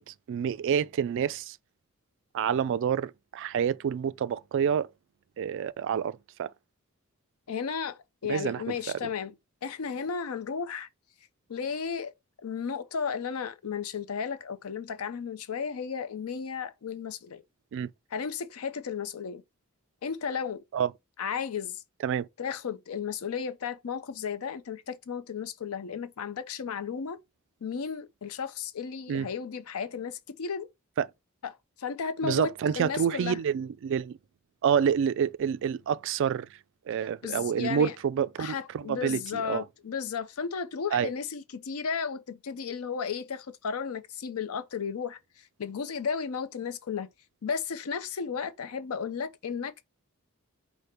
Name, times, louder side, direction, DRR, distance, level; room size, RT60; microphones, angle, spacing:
voice 1, 0.0-1.6 2.3-4.9 5.4-6.5 8.3-8.6 17.7-17.9 20.7-20.9 22.0-22.3 29.1-29.3 31.0-31.1 32.2-34.2 34.6-36.5 36.9-39.6 40.9-41.1, right 7 dB, 60° right, 0.3 m, -28 dB
voice 2, 7.5-9.3 9.6-10.9 11.5-12.1 12.4-17.4 18.1-19.4 20.0-20.6 21.2-21.8 22.4-27.2 27.6-30.7 31.4-33.4 37.2-37.9 38.4-45.2 45.6-47.1 47.4-49.8, left 6 dB, 90° left, 0.5 m, -34 dB
5.0 x 2.1 x 4.3 m
head